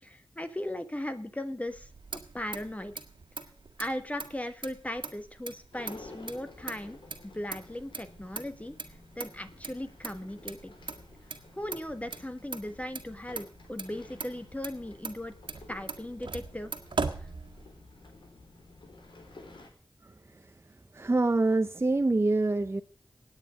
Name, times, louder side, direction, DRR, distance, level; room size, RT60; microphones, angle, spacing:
voice 1, 0.0-2.9 3.8-7.0 7.2-8.7 9.1-10.7 11.5-15.3 15.7-16.7, left 1 dB, 15° left, 9 dB, 1.4 m, -38 dB
Motor vehicle (road), 1.7-18.0, right 4 dB, 85° right, 1.6 m, -41 dB
sound 1, 5.7-19.7, left 2 dB, 90° left, 3.9 m, -52 dB
voice 2, 20.0-20.4 20.9-22.8, right 2 dB, 30° right, 9 dB, 0.7 m, -26 dB
18.0 x 9.2 x 5.1 m, 0.43 s
wide cardioid pair, 65°, 8 cm